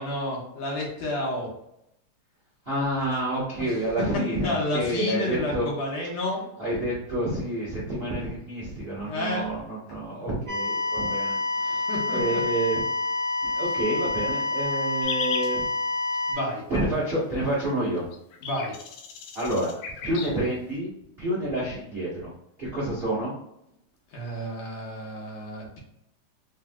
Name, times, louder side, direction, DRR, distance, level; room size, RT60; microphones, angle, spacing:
voice 1, 0.0-1.5 3.6-3.7 4.0-4.1 4.4-6.4 9.0-9.5 11.9-12.4 16.3-16.6 18.4-18.8 24.1-25.8, left 1 dB, 70° left, -2 dB, 2.1 m, -30 dB
voice 2, 2.6-5.7 6.6-12.8 13.4-15.6 16.7-18.0 19.3-19.7 20.0-20.9 21.2-22.3 22.6-23.3, right 1 dB, 70° right, -7 dB, 0.5 m, -28 dB
sound 1, 10.5-16.3, left 2 dB, 45° right, 1.9 m, -28 dB
sound 2, 15.0-15.5 17.7-17.8 18.0-20.3, left 6 dB, 90° left, 2.1 m, -35 dB
4.9 x 2.6 x 2.3 m, 0.79 s
omnidirectional pair, 3.3 m